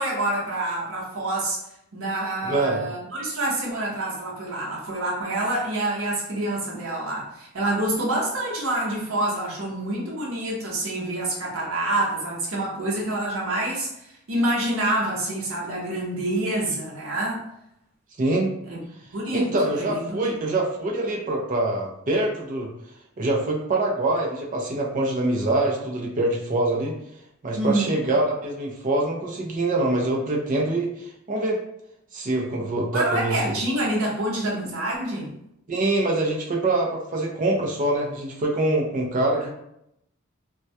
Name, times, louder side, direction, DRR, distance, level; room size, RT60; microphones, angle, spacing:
voice 1, 0.0-1.6 1.9-17.4 18.7-18.8 19.1-20.3 27.5-28.0 32.9-35.3, right 1 dB, 80° right, -4 dB, 0.7 m, -27 dB
voice 2, 2.4-2.8 18.2-18.5 19.3-22.7 23.2-26.9 27.4-31.6 32.1-33.5 35.7-39.5, right 2 dB, 40° right, -1 dB, 0.5 m, -24 dB
2.2 x 2.1 x 2.7 m, 0.79 s
head